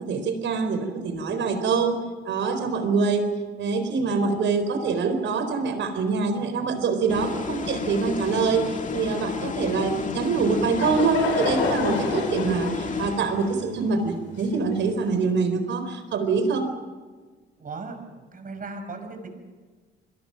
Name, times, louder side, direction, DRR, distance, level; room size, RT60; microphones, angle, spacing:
voice 1, 0.0-2.0 2.2-3.3 3.6-16.7, right 4 dB, 70° right, 9 dB, 4.3 m, -25 dB
sound 1, 7.1-13.7, left 5 dB, 40° left, 2.1 m, -31 dB
Laughter / Crowd, 10.4-15.0, left 4 dB, 85° left, 5.4 m, -30 dB
voice 2, 17.6-19.4, right 3 dB, 45° right, 6 dB, 5.7 m, -37 dB
29.5 x 22.0 x 5.9 m, 1.4 s
cardioid pair, 90°, 20 cm